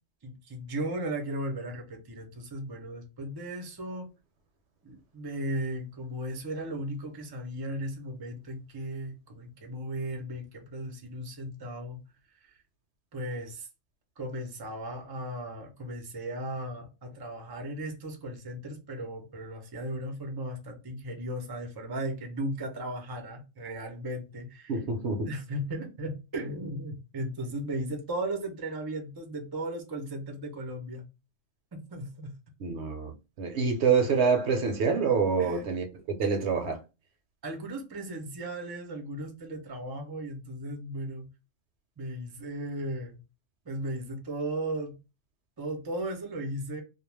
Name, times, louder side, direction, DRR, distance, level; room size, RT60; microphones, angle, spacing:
voice 1, 0.2-4.1 4.8-12.0 12.4-12.6 13.1-13.7 14.2-24.7 25.2-31.0 31.7-32.3 35.4-35.7 37.4-41.3 42.0-43.2 43.7-45.0 45.6-46.8, right 1 dB, 30° right, 0.4 m, -36 dB
voice 2, 24.7-25.3 32.6-33.1 33.4-35.9 36.2-36.8, right 5 dB, 65° right, 0.9 m, -26 dB
2.3 x 2.1 x 3.1 m
omnidirectional pair, 1.3 m